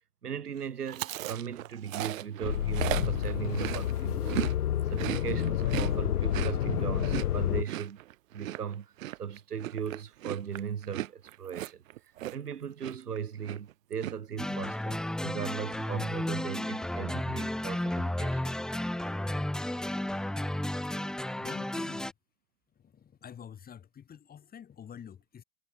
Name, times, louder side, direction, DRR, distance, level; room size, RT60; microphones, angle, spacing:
voice 1, 0.2-4.5 4.9-8.0 8.3-8.9 9.2-18.4, right 8 dB, 80° right, 2.8 m, -38 dB
Chewing mastication, 0.9-4.5 4.8-12.5 12.8-13.2 13.4-14.1, right 15 dB, 60° right, 0.8 m, -37 dB
sound 1, 2.4-7.6, left 11 dB, 75° left, 1.0 m, -29 dB
sound 2, 14.4-22.1, left 1 dB, ahead, 0.8 m, -33 dB
voice 2, 21.4-22.1 22.7-25.4, left 8 dB, 20° left, 3.4 m, -48 dB
hypercardioid pair, 110°, 46 cm